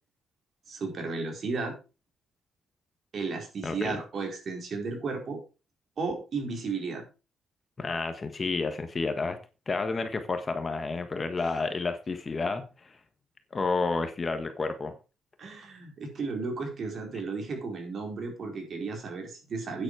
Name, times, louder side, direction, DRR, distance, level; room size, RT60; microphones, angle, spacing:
voice 1, 0.7-1.8 3.1-5.4 6.0-7.0 15.4-19.8, right 4 dB, 50° right, 3 dB, 4.5 m, -34 dB
voice 2, 3.6-4.0 7.8-9.4 9.7-12.9 13.5-14.9, left 4 dB, 30° left, 8 dB, 1.5 m, -30 dB
9.4 x 8.4 x 4.8 m, 0.31 s
cardioid pair, 110°, 0 cm